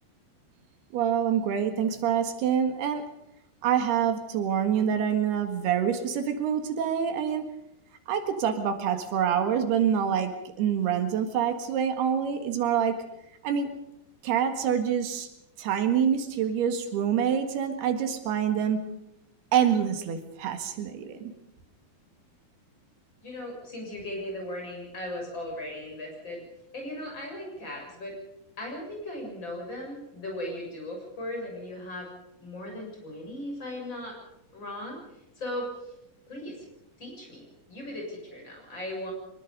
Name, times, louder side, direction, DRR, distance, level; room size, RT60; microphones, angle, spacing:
voice 1, 0.9-3.0 3.6-7.4 8.1-10.3 10.6-13.0 13.4-13.7 14.2-15.3 15.6-18.8 19.5-21.3, right 8 dB, 85° right, 7 dB, 3.8 m, -26 dB
voice 2, 23.2-26.4 26.7-28.1 28.6-32.1 32.4-34.1 34.5-35.0 35.4-35.7 36.3-36.6 37.0-39.1, left 1 dB, 30° left, -1 dB, 7.8 m, -37 dB
24.0 x 21.0 x 5.4 m, 0.83 s
omnidirectional pair, 4.5 m